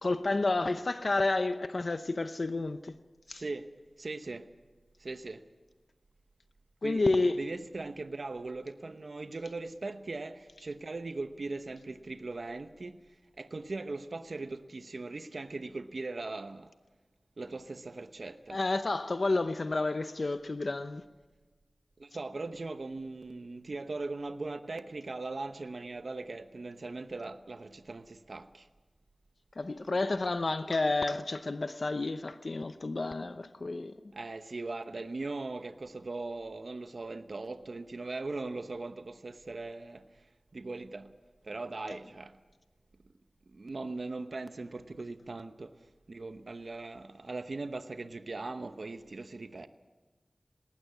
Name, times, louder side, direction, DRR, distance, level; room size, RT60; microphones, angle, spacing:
voice 1, 0.0-2.9 3.3-3.4 6.8-7.4 18.5-21.0 29.6-33.9 41.9-42.0, left 2 dB, 60° left, 0.7 m, -30 dB
voice 2, 3.3-3.7 4.0-4.5 5.0-5.4 6.8-7.0 7.4-13.0 13.4-16.7 17.4-18.6 22.0-28.7 34.1-40.0 40.5-41.1 41.5-42.3 43.5-45.7 46.1-49.7, right 3 dB, 65° right, 0.9 m, -39 dB
19.5 x 18.5 x 8.3 m
wide cardioid pair, 80°, 0 cm